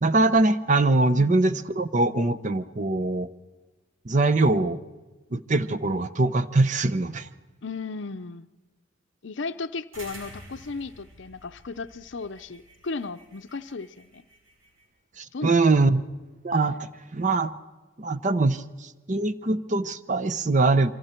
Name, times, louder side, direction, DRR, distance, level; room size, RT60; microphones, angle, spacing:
voice 1, 0.0-3.3 4.1-4.8 5.3-7.3 15.2-16.0 16.4-17.5 18.0-20.9, right 2 dB, 35° right, 13 dB, 0.7 m, -23 dB
voice 2, 7.6-8.5 9.2-14.2 15.3-16.0, left 4 dB, 60° left, 10 dB, 0.6 m, -35 dB
sound 1, 9.9-14.8, right 1 dB, 85° right, 6.6 m, -49 dB
27.0 x 24.5 x 4.5 m, 1.2 s
head